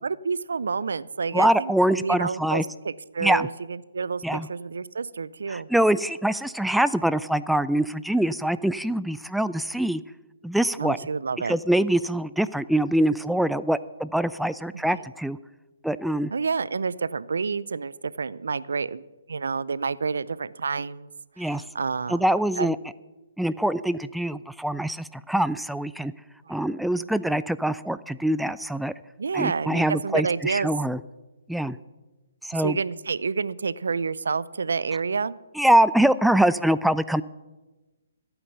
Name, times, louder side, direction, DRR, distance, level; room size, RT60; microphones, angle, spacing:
voice 1, 0.0-1.7 2.0-5.7 10.8-11.6 14.8-15.0 16.3-19.0 19.3-21.1 21.4-22.2 22.6-22.7 26.5-26.6 29.2-30.7 32.5-35.3, right 5 dB, 70° right, 19 dB, 0.5 m, -29 dB
voice 2, 1.3-2.7 3.2-3.5 4.2-4.5 5.5-10.0 10.4-11.0 11.5-15.4 15.8-16.3 21.4-21.6 22.1-22.8 23.4-26.1 26.5-28.9 29.3-31.0 31.5-31.8 32.4-32.8 35.6-37.2, right 1 dB, ahead, 15 dB, 0.3 m, -24 dB
15.0 x 8.9 x 6.7 m, 1.1 s
figure-of-eight pair, 130°, 0 cm